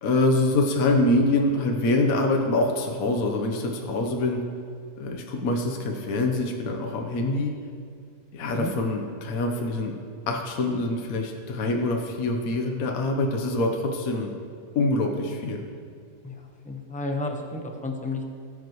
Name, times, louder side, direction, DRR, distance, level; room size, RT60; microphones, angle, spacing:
voice 1, 0.0-4.4 5.0-7.5 8.3-10.0 10.3-14.3 14.7-15.6, left 2 dB, 60° left, 2 dB, 1.3 m, -25 dB
voice 2, 16.2-18.2, left 2 dB, 5° left, 2 dB, 0.6 m, -32 dB
19.0 x 8.1 x 3.1 m, 2.2 s
omnidirectional pair, 1.8 m